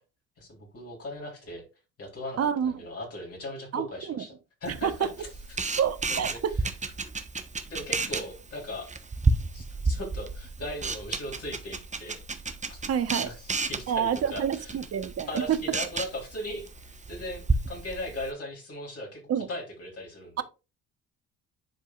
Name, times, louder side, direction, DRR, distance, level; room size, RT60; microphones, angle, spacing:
voice 1, 0.4-1.6 2.0-4.3 4.6-5.8 6.1-6.6 7.7-8.9 9.5-12.2 12.7-12.8 13.2-14.8 15.3-20.4, left 1 dB, 45° left, 3.5 m, -38 dB
voice 2, 2.4-2.7 3.7-4.2 4.8-4.9 5.8-6.5 12.9-13.3 13.9-15.6 19.3-19.5 20.4-20.5, right 8 dB, 45° right, 1.0 m, -28 dB
Camera, 4.6-18.3, right 3 dB, 20° right, 1.0 m, -32 dB
10.5 x 4.7 x 2.4 m
hypercardioid pair, 55°, 35 cm